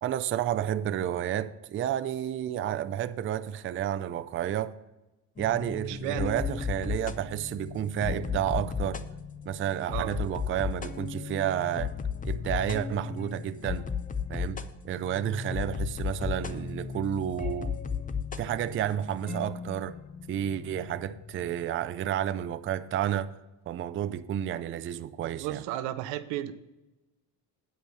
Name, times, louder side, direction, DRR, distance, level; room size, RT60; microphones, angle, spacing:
voice 1, 0.0-4.8 5.4-9.0 9.5-11.9 12.2-13.9 14.3-17.8 18.4-20.0 20.3-23.3 23.7-25.6, right 10 dB, 30° right, 0.4 m, -31 dB
sound 1, 5.4-21.6, left 6 dB, 20° left, 0.5 m, -35 dB
voice 2, 5.9-6.3 9.9-10.1 25.4-26.5, right 13 dB, 90° right, 0.7 m, -33 dB
8.9 x 5.2 x 6.3 m
cardioid pair, 100°, 42 cm